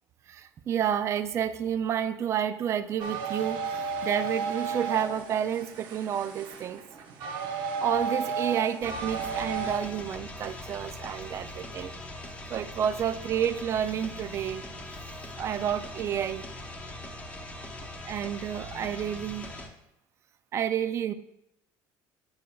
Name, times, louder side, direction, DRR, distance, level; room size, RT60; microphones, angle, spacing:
voice 1, 0.3-6.8 7.8-11.9 12.5-14.6 15.4-16.4 18.0-19.5 20.5-21.1, right 9 dB, 35° right, 12 dB, 0.3 m, -30 dB
sound 1, 3.0-9.8, right 5 dB, 65° right, 1.0 m, -33 dB
sound 2, 8.8-19.7, left 1 dB, 15° left, 0.9 m, -41 dB
9.5 x 7.0 x 2.3 m, 0.82 s
cardioid pair, 150°, 8 cm